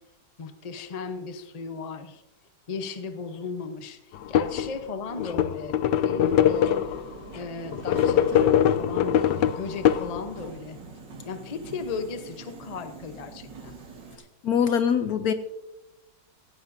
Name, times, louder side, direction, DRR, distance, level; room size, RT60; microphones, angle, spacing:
voice 1, 0.4-2.2 2.7-5.8 6.0-6.7 7.3-10.8 11.3-13.8, left 4 dB, 30° left, 8 dB, 0.7 m, -36 dB
sound 1, 4.1-4.7 5.1-7.1 7.7-10.5, left 10 dB, 80° left, 1.3 m, -22 dB
Subway metro underground, 6.3-14.2, right 4 dB, 80° right, 2.5 m, -43 dB
voice 2, 14.4-15.3, left 7 dB, 65° left, 10 dB, 1.0 m, -23 dB
16.5 x 16.0 x 2.7 m, 0.98 s
omnidirectional pair, 2.0 m